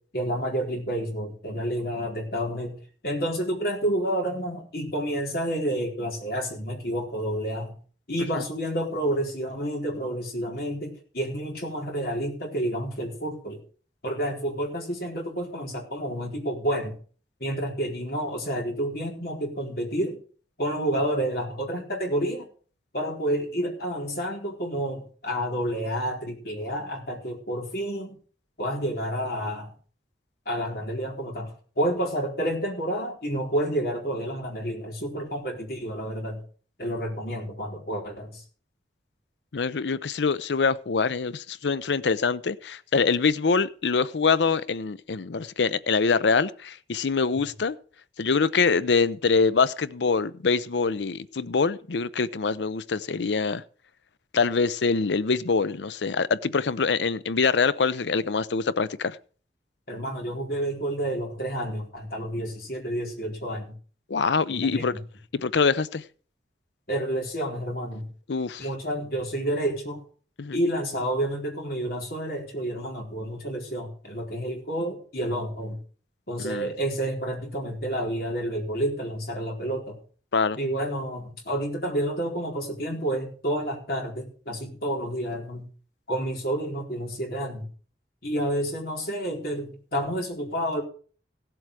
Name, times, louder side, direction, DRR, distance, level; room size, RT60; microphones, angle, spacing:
voice 1, 0.1-2.8 3.0-7.7 8.1-13.6 14.0-16.9 17.4-20.2 20.6-22.5 22.9-28.2 28.6-29.7 30.5-36.4 36.8-38.4 59.9-63.7 64.5-65.0 66.9-68.1 68.6-70.0 70.5-75.8 76.3-80.0 80.6-85.7 86.1-87.7 88.2-90.8, right 1 dB, 55° left, 4.3 m, -29 dB
voice 2, 39.5-47.8 48.2-53.6 54.3-59.2 64.1-64.9 65.3-66.0 68.3-68.6 70.4-70.6 76.4-76.7 80.3-80.6, left 4 dB, 85° left, 0.6 m, -24 dB
16.5 x 7.8 x 4.9 m
head